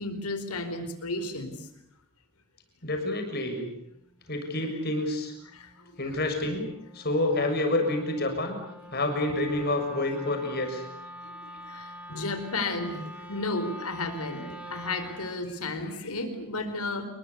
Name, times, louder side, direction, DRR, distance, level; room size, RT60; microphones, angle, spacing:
voice 1, 0.0-1.5 6.1-6.2 11.7-13.0 13.3-17.0, left 2 dB, 90° left, 9 dB, 4.8 m, -33 dB
voice 2, 2.8-3.7 4.3-5.3 6.0-6.6 6.9-8.6 8.9-10.8, left 2 dB, 45° left, 4 dB, 6.8 m, -28 dB
Wind instrument woodwind instrument, 3.9-15.5, equal, 5° right, 3.1 m, -46 dB
29.0 x 21.5 x 8.5 m, 0.78 s
head